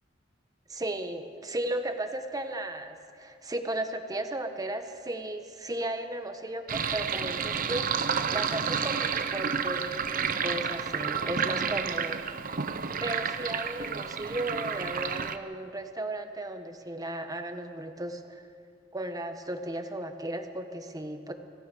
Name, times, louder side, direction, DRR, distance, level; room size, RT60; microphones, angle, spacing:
voice 1, 0.7-12.2 13.0-18.4 18.9-21.3, right 1 dB, 20° right, 6 dB, 1.4 m, -35 dB
Sink (filling or washing), 6.7-15.4, right 6 dB, 45° right, 0.8 m, -30 dB
26.0 x 16.5 x 6.3 m, 2.2 s
head